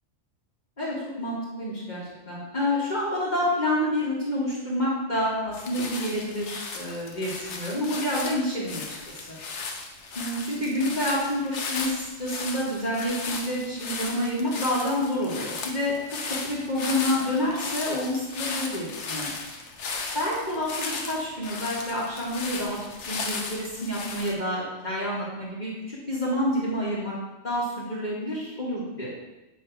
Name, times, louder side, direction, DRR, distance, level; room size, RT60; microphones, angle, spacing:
voice 1, 0.8-8.8 9.1-9.4 10.1-15.9 16.4-19.3 20.1-22.8 23.1-27.1 27.4-29.1, left 1 dB, 35° left, -7 dB, 1.7 m, -28 dB
sound 1, 5.5-24.3, left 4 dB, 60° left, 1.1 m, -36 dB
8.5 x 3.3 x 4.5 m, 1.0 s
omnidirectional pair, 1.4 m